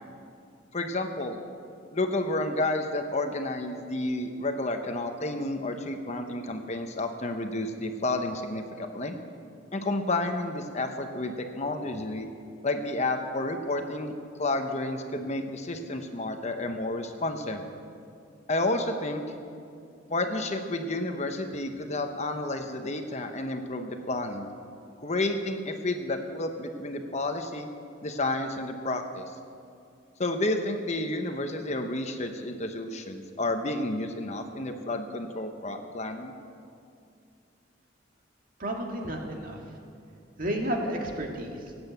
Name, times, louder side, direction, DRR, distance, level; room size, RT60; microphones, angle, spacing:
voice 1, 0.7-1.4 1.9-9.1 9.7-12.3 12.6-17.6 18.5-19.2 20.1-24.5 25.0-27.7 28.0-29.3 30.2-36.3, left 2 dB, 35° left, 6 dB, 1.0 m, -31 dB
voice 2, 38.6-39.6 40.4-41.7, right 1 dB, 45° right, 1 dB, 2.1 m, -31 dB
17.5 x 8.9 x 8.1 m, 2.4 s
head